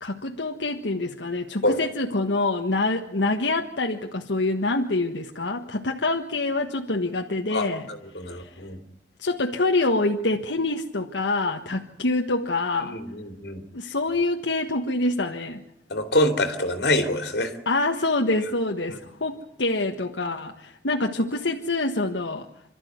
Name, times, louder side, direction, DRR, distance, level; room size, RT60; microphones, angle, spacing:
voice 1, 0.0-7.8 8.4-8.5 9.2-13.0 13.7-15.6 17.6-22.5, left 2 dB, 90° left, 3 dB, 1.5 m, -26 dB
voice 2, 7.5-8.8 12.8-13.6 15.9-17.5 18.3-18.4 18.9-19.0, left 1 dB, 70° left, 6 dB, 3.0 m, -26 dB
27.5 x 13.5 x 9.5 m, 0.76 s
head